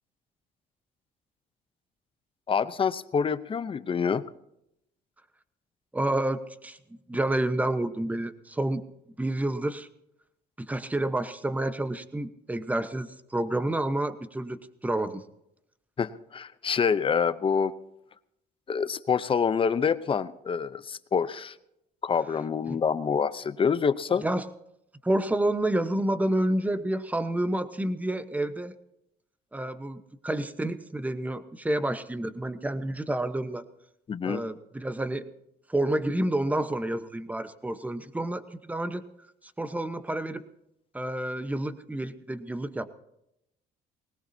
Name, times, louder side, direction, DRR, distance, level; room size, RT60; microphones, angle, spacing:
voice 1, 2.5-4.3 16.0-17.7 18.7-21.5 22.0-24.2 34.1-34.4, left 6 dB, 30° left, 14 dB, 0.8 m, -26 dB
voice 2, 5.9-6.8 7.1-8.8 9.2-9.9 10.6-15.2 22.7-22.8 24.2-24.4 25.0-28.8 29.5-33.6 34.2-35.3 35.7-39.0 39.6-40.4 40.9-42.9, right 1 dB, 10° right, 11 dB, 1.1 m, -29 dB
20.5 x 19.0 x 2.8 m, 0.81 s
cardioid pair, 110°, 17 cm